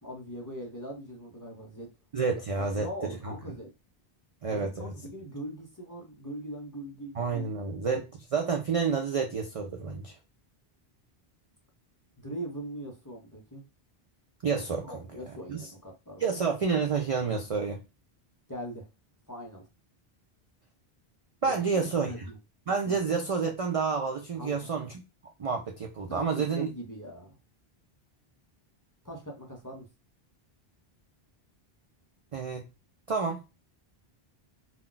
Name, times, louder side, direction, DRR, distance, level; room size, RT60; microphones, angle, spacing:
voice 1, 0.0-1.9 2.6-3.7 4.5-7.8 12.2-13.6 14.8-16.2 18.5-18.9 19.3-19.6 21.5-22.4 22.9-23.0 24.4-24.8 26.1-27.4 29.0-29.9, equal, 25° left, 0.5 m, -41 dB
voice 2, 2.1-2.9 3.2-3.3 4.4-4.9 7.1-10.1 14.4-14.9 15.5-15.6 16.2-17.8 21.4-22.3 22.7-24.9 25.4-26.7 32.3-32.7 33.1-33.4, right 5 dB, 55° right, 0.4 m, -29 dB
2.3 x 2.2 x 3.8 m
omnidirectional pair, 1.1 m